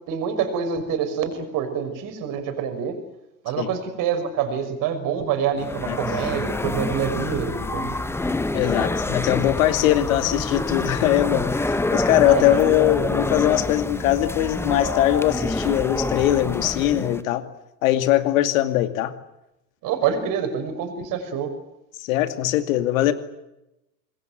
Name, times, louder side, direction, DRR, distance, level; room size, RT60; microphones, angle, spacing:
voice 1, 0.1-3.0 3.4-8.0 12.3-12.6 19.8-21.5, right 7 dB, 40° right, 8 dB, 5.8 m, -26 dB
sound 1, 5.6-17.2, left 2 dB, 5° left, 1.4 m, -27 dB
voice 2, 8.5-17.5 17.8-19.1 22.0-23.1, left 14 dB, 50° left, 10 dB, 2.6 m, -21 dB
26.0 x 21.0 x 9.3 m, 0.89 s
figure-of-eight pair, 85°, 50 cm